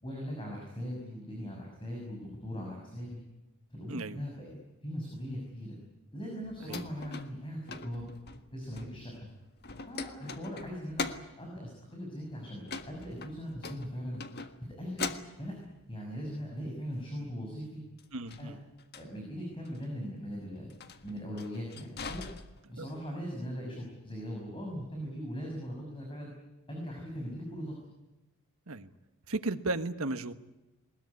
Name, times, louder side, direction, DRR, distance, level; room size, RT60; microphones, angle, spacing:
voice 1, 0.0-3.2 3.7-4.5 4.8-5.8 6.1-8.1 8.5-9.1 9.9-11.1 11.4-14.2 14.8-15.1 15.4-15.5 15.9-17.8 18.4-18.5 18.9-20.7 21.0-22.2 22.7-26.3 26.7-27.8, equal, 25° left, 0 dB, 6.3 m, -40 dB
sound 1, 6.4-9.3 9.6-11.4 12.6-14.6 15.0-15.8 18.0-19.1 19.7-19.9 20.7-23.0, left 4 dB, 45° left, 1.6 m, -42 dB
voice 2, 18.1-18.6 22.7-22.9 28.7-28.9 29.3-30.3, right 2 dB, 70° right, 10 dB, 1.4 m, -35 dB
21.0 x 21.0 x 9.7 m, 1.0 s
head